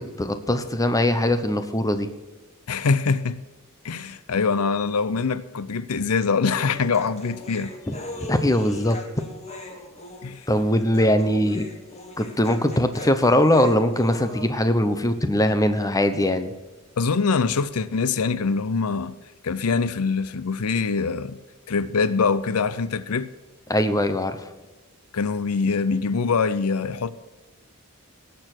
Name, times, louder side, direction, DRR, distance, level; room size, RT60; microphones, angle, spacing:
voice 1, 0.0-2.1 7.9-8.0 8.3-9.0 10.5-11.7 12.2-16.5 23.7-24.4, left 1 dB, 15° left, 0.9 m, -21 dB
voice 2, 2.7-3.4 3.8-7.7 10.2-10.4 17.0-19.2 19.4-21.4 21.7-23.3 25.1-27.1, left 4 dB, 85° left, 0.6 m, -24 dB
Human voice, 6.4-14.5, left 2 dB, 30° left, 1.7 m, -39 dB
18.5 x 7.0 x 6.1 m
head